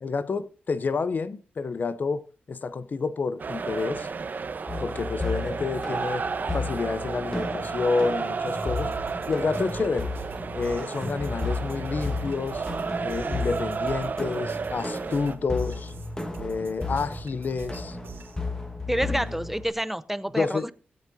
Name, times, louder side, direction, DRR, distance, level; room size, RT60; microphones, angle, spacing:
voice 1, 0.0-4.1 4.8-6.3 6.5-8.9 9.3-10.1 10.5-12.6 13.0-15.9 16.4-18.0 18.9-19.3 20.3-20.7, left 4 dB, 50° left, 0.5 m, -29 dB
sound 1, 3.4-15.4, right 5 dB, 50° right, 0.8 m, -33 dB
sound 2, 4.7-19.7, left 3 dB, 20° left, 1.4 m, -34 dB
sound 3, 8.5-18.4, right 3 dB, 85° right, 2.9 m, -43 dB
voice 2, 18.9-20.7, right 1 dB, 5° right, 0.5 m, -28 dB
18.0 x 8.3 x 2.6 m
cardioid pair, 80°, 4 cm